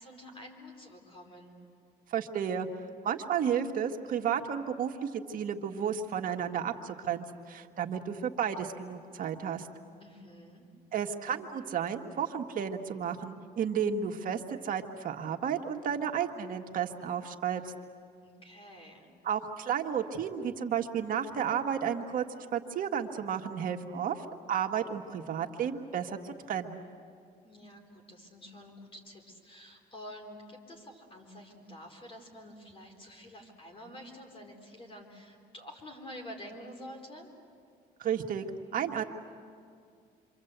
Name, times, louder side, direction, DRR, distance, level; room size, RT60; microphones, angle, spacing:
voice 1, 0.0-1.5 10.0-10.7 18.2-19.1 27.4-37.3, equal, 35° left, 3 dB, 4.1 m, -48 dB
voice 2, 2.1-2.7 3.0-9.7 10.9-17.7 19.2-22.2 22.5-26.8 38.0-38.4 38.7-39.0, right 8 dB, 55° right, 4 dB, 1.6 m, -32 dB
28.5 x 25.5 x 8.1 m, 2.3 s
cardioid pair, 110°, 17 cm